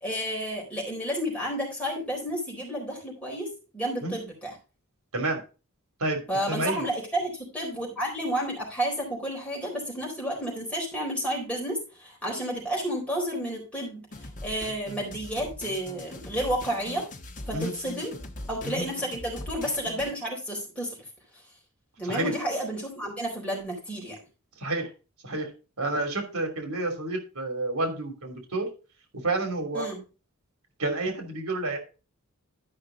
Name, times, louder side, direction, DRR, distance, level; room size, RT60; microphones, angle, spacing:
voice 1, 0.0-4.5 6.3-17.1 17.5-18.1 18.5-21.0 22.0-24.2 29.7-30.0, equal, 5° left, -3 dB, 3.9 m, -31 dB
voice 2, 6.0-6.9 17.5-17.7 18.6-18.9 22.1-22.3 24.6-24.9 25.2-28.7 29.1-29.9 30.8-31.8, right 2 dB, 80° right, 5 dB, 2.8 m, -30 dB
sound 1, 14.1-20.1, left 2 dB, 35° left, 1.1 m, -41 dB
12.0 x 5.7 x 3.8 m, 0.31 s
head